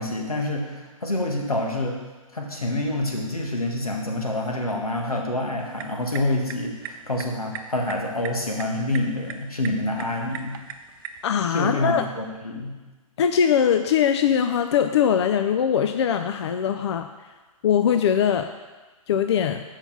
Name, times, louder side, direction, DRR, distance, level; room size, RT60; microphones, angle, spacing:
voice 1, 0.0-2.0 2.3-10.6 11.5-12.7, left 1 dB, 90° left, 1 dB, 1.7 m, -27 dB
sound 1, 5.6-11.3, right 7 dB, 35° right, 0.6 m, -40 dB
voice 2, 11.2-12.1 13.2-17.1 17.6-18.5 19.1-19.6, left 8 dB, 50° left, 7 dB, 0.5 m, -21 dB
7.0 x 5.7 x 5.8 m, 1.2 s
figure-of-eight pair, 130°, 18 cm